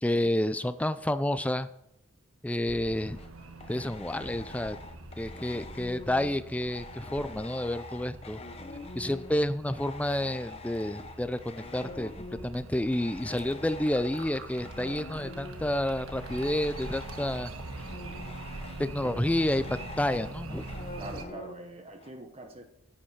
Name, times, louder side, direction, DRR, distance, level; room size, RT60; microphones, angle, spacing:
voice 1, 0.0-1.7 2.4-3.2 3.7-4.8 5.2-8.4 9.0-12.1 12.4-17.5 18.8-20.6, left 1 dB, 5° left, 12 dB, 0.4 m, -30 dB
sound 1, 2.6-21.2, right 2 dB, 80° right, 1.3 m, -44 dB
sound 2, 3.2-9.4 9.7-22.1, left 3 dB, 30° left, 0.7 m, -45 dB
Fill (with liquid), 13.1-19.3, right 3 dB, 60° right, 1.7 m, -55 dB
voice 2, 21.0-22.6, right 1 dB, 30° right, 5 dB, 0.9 m, -43 dB
10.0 x 8.8 x 4.7 m, 0.82 s
head